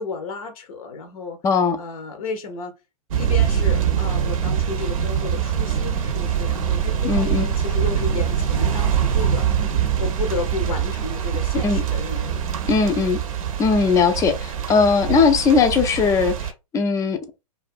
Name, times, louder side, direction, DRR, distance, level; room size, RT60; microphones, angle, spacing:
voice 1, 0.0-1.4 1.8-2.7 3.2-9.7 10.0-12.5 12.8-13.0, left 4 dB, 65° left, 0.6 m, -33 dB
voice 2, 1.4-1.8 7.0-7.5 11.6-11.8 12.7-13.2 13.6-17.4, left 5 dB, 15° left, 0.4 m, -19 dB
sound 1, 3.1-16.5, right 8 dB, 60° right, 0.6 m, -23 dB
2.4 x 2.3 x 2.4 m
figure-of-eight pair, 105°, 20 cm